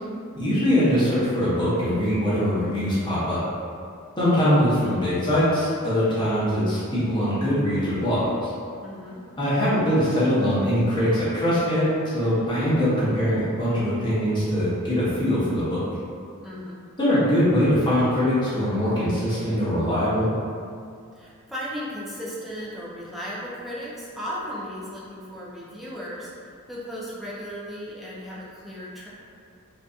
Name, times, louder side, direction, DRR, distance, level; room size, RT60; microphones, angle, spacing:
voice 1, 0.3-3.4 4.2-8.5 9.4-15.8 17.0-20.3, equal, 20° left, -11 dB, 0.8 m, -22 dB
voice 2, 8.8-9.2 16.4-16.8 21.1-29.1, equal, ahead, -8 dB, 0.4 m, -36 dB
2.6 x 2.3 x 2.3 m, 2.3 s
head